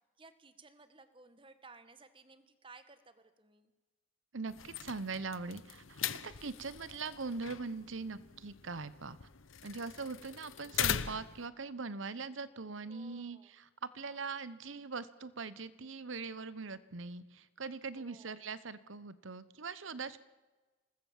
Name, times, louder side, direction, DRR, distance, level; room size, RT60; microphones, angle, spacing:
voice 1, 0.2-3.7 12.8-13.5 17.9-18.4, right 3 dB, 25° right, 11 dB, 1.4 m, -58 dB
voice 2, 4.3-9.2 9.6-20.2, right 4 dB, 70° right, 16 dB, 1.0 m, -42 dB
sound 1, 4.5-11.5, left 9 dB, 75° left, 0.9 m, -40 dB
26.5 x 20.0 x 7.3 m, 1.2 s
head